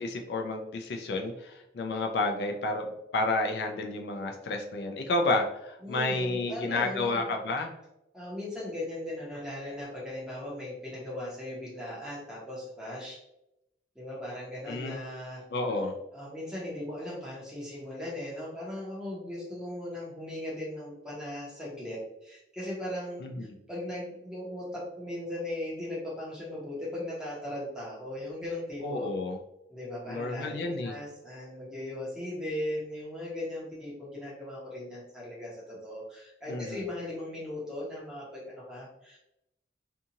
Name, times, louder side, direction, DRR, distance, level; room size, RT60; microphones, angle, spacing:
voice 1, 0.0-7.7 14.7-15.0 15.5-15.9 23.2-23.5 28.8-29.4 30.1-31.0 36.5-36.8, left 2 dB, 70° left, 3 dB, 0.3 m, -31 dB
voice 2, 5.8-7.2 8.1-13.2 13.9-15.4 16.1-29.1 29.7-39.2, left 1 dB, 5° right, -7 dB, 0.9 m, -38 dB
2.6 x 2.4 x 2.8 m, 0.86 s
head